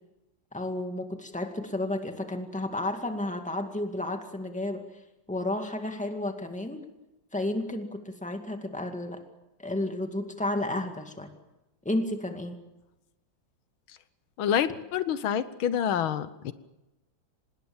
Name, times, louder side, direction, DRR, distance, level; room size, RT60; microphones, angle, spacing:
voice 1, 0.5-4.8 5.3-6.8 7.3-9.2 9.6-11.3 11.8-12.5, left 1 dB, 5° left, 5 dB, 2.0 m, -32 dB
voice 2, 14.4-16.5, left 9 dB, 90° left, 13 dB, 1.8 m, -27 dB
25.5 x 20.5 x 7.3 m, 0.99 s
omnidirectional pair, 2.2 m